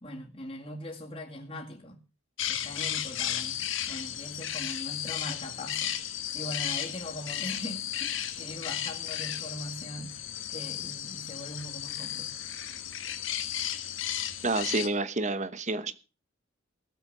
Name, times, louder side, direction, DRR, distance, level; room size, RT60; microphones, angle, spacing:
voice 1, 0.0-2.0 2.5-6.0 6.3-12.4, left 1 dB, 25° left, 2.2 m, -41 dB
sound 1, 2.4-14.9, left 10 dB, 70° left, 1.5 m, -34 dB
voice 2, 14.4-15.9, right 3 dB, 35° right, 1.0 m, -29 dB
17.0 x 7.5 x 6.7 m
head